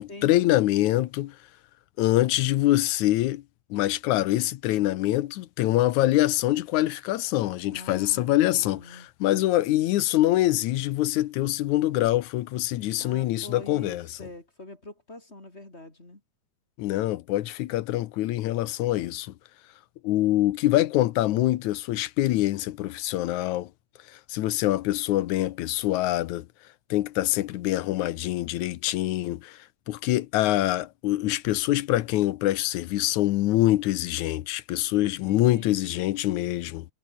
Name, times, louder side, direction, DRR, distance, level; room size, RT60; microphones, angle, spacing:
voice 1, 0.0-1.4 2.0-3.4 3.7-14.3 16.8-19.3 20.0-23.7 24.1-26.5 26.9-29.6 29.9-36.9, left 15 dB, 80° left, 2.2 m, -25 dB
voice 2, 7.7-9.1 13.0-16.2 35.2-36.2, left 2 dB, 20° left, 4.2 m, -45 dB
omnidirectional pair, 3.4 m